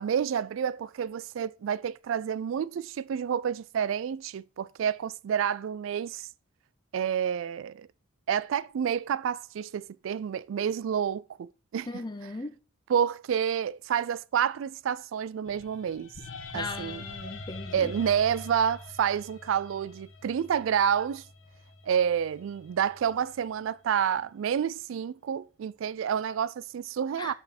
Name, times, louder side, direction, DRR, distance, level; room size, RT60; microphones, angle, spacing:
voice 1, 0.0-6.3 6.9-7.9 8.3-11.9 12.9-16.1 16.5-17.0 17.7-21.3 21.8-27.3, right 8 dB, 70° right, 0.3 m, -29 dB
voice 2, 11.9-12.5 16.5-17.9 27.2-27.3, left 3 dB, 20° left, 0.6 m, -38 dB
sound 1, 15.5-23.6, left 3 dB, 85° left, 1.1 m, -45 dB
5.8 x 5.5 x 4.2 m
head